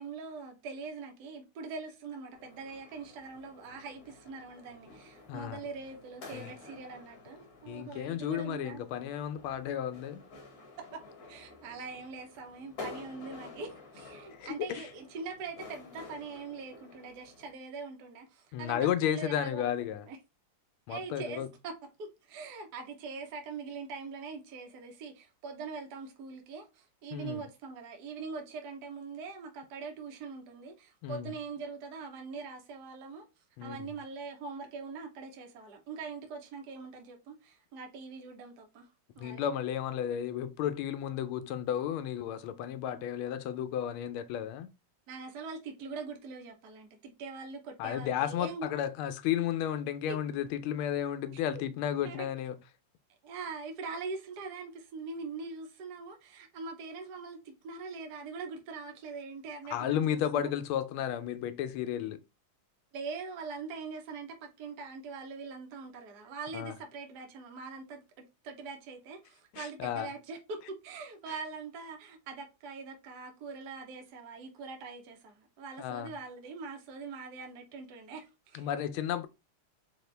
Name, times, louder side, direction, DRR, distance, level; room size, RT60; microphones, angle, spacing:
voice 1, 0.0-8.8 10.8-11.0 11.3-19.7 20.0-20.2 20.9-33.2 33.6-38.9 39.1-39.5 42.8-43.1 45.1-48.7 50.1-50.2 51.3-51.6 52.0-52.3 53.2-60.5 62.9-78.7, right 4 dB, 60° right, 1.3 m, -43 dB
sound 1, 2.3-17.5, left 3 dB, 50° left, 1.3 m, -51 dB
voice 2, 5.3-5.6 6.3-6.5 7.7-10.2 14.4-14.8 18.5-20.1 20.9-21.5 27.1-27.4 31.0-31.3 33.6-33.9 39.2-44.7 47.8-52.5 59.7-62.2 66.5-66.7 69.5-70.1 75.8-76.1 78.5-79.3, left 10 dB, 80° left, 1.4 m, -33 dB
4.2 x 2.7 x 3.3 m
omnidirectional pair, 2.3 m